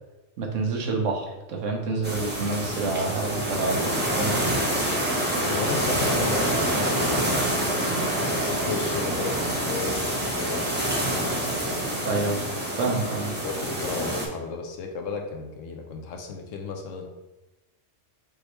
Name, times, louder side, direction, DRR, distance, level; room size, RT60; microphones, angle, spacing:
voice 1, 0.4-4.4 12.0-12.4 12.8-13.4, right 3 dB, 80° right, 1 dB, 1.2 m, -28 dB
sound 1, 2.0-14.3, right 1 dB, 10° right, 0.8 m, -26 dB
voice 2, 5.3-7.4 8.1-10.7 13.4-17.1, left 4 dB, 85° left, 3 dB, 1.1 m, -33 dB
5.2 x 3.2 x 3.1 m, 1.1 s
omnidirectional pair, 1.3 m